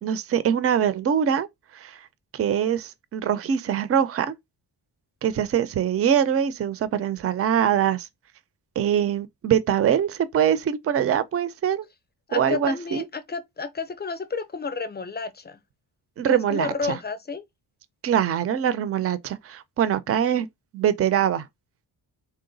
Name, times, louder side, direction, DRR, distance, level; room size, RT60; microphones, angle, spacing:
voice 1, 0.0-1.5 1.7-2.0 2.3-4.3 5.2-8.1 8.8-11.8 12.3-13.0 16.2-17.0 18.0-20.5 20.7-21.5, right 9 dB, 35° right, 0.4 m, -23 dB
voice 2, 12.3-15.6 16.3-17.4, left 4 dB, 25° left, 0.5 m, -31 dB
3.8 x 2.2 x 3.8 m
wide cardioid pair, 125°, 43 cm